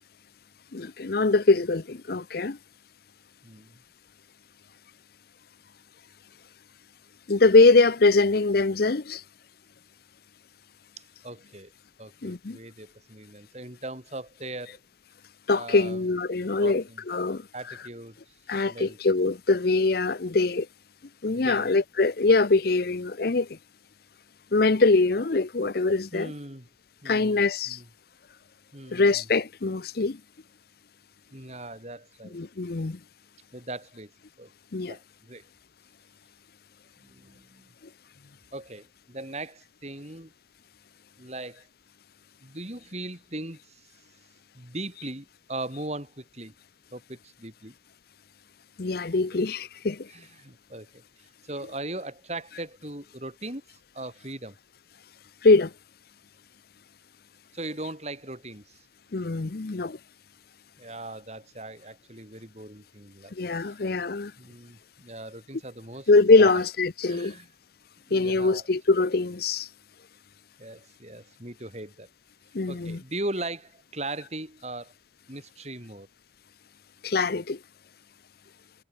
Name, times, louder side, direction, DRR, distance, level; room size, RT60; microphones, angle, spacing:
voice 1, 0.7-2.6 7.3-9.2 12.2-12.6 15.5-17.5 18.5-20.7 21.2-23.6 24.5-26.3 27.0-27.8 28.9-30.2 32.3-33.0 34.7-34.9 48.8-50.1 55.4-55.7 59.1-60.0 63.3-64.3 66.1-67.4 68.1-69.7 72.5-73.0 77.0-77.6, left 3 dB, 55° left, 0.7 m, -23 dB
voice 2, 3.4-3.8 11.2-11.7 12.0-14.8 15.5-16.0 16.6-17.0 17.5-18.3 18.6-19.0 21.3-21.8 26.1-26.7 27.0-27.9 28.7-29.2 31.3-32.4 33.5-34.1 34.4-34.5 34.9-35.5 37.0-37.7 38.5-40.3 41.2-41.7 42.4-43.9 44.6-46.5 46.9-47.7 50.1-54.6 57.5-58.9 60.8-63.8 64.4-66.1 66.4-66.6 67.1-67.5 68.1-68.6 70.6-72.1 72.7-74.9 75.3-76.1, right 2 dB, 35° right, 5.1 m, -39 dB
head